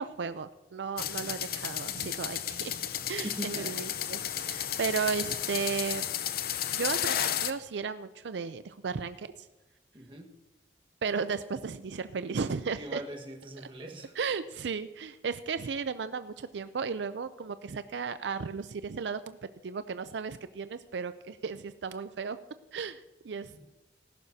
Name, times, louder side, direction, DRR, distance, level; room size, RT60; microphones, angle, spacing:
voice 1, 0.0-2.8 3.1-4.2 4.5-6.0 6.7-9.5 11.0-13.0 14.2-19.4 19.6-22.4 22.7-23.7, right 5 dB, 80° right, 12 dB, 0.5 m, -35 dB
sound 1, 1.0-7.5, left 10 dB, 55° left, 0.6 m, -33 dB
voice 2, 2.5-2.9 3.2-3.8 9.9-10.3 12.7-14.1 23.5-23.7, right 1 dB, 30° right, 2 dB, 1.5 m, -41 dB
18.5 x 11.5 x 2.8 m, 1.1 s
head